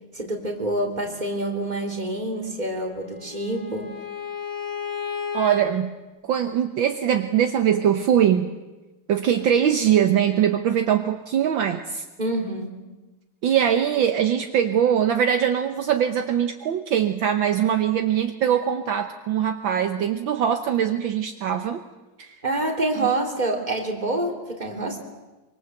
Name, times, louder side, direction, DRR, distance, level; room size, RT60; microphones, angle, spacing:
voice 1, 0.1-3.9 12.2-12.8 22.4-25.0, right 2 dB, 20° right, 2 dB, 3.5 m, -27 dB
Bowed string instrument, 2.5-5.6, left 5 dB, 50° left, 6.0 m, -33 dB
voice 2, 5.3-6.0 6.3-8.5 9.1-12.1 13.4-21.8 22.2-22.4 23.0-23.1, right 9 dB, 65° right, 6 dB, 1.7 m, -22 dB
24.5 x 24.0 x 7.9 m, 1.1 s
omnidirectional pair, 2.4 m